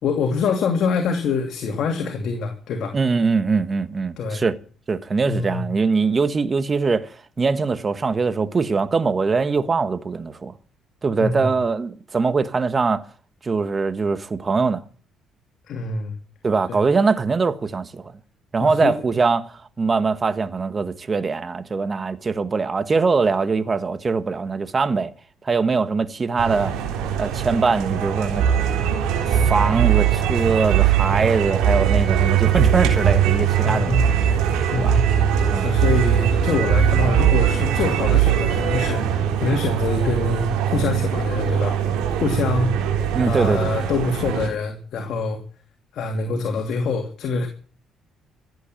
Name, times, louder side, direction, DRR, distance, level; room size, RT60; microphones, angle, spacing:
voice 1, 0.0-3.0 4.2-4.4 5.3-5.6 11.2-11.5 15.7-16.1 16.7-16.8 18.6-18.9 33.6-34.0 34.7-35.2 35.5-41.8 42.2-42.8 43.2-45.4 45.9-47.5, left 4 dB, 65° left, 2.7 m, -25 dB
voice 2, 2.9-4.6 4.9-10.5 11.0-13.0 13.4-14.8 16.4-18.1 18.5-25.1 25.4-26.7 27.2-28.5 29.3-34.0 34.7-34.9 35.5-35.7 43.1-43.7, right 4 dB, 30° right, 1.4 m, -22 dB
sound 1, 26.4-44.5, right 9 dB, 90° right, 3.7 m, -20 dB
15.0 x 8.2 x 8.9 m
cardioid pair, 85°, 0 cm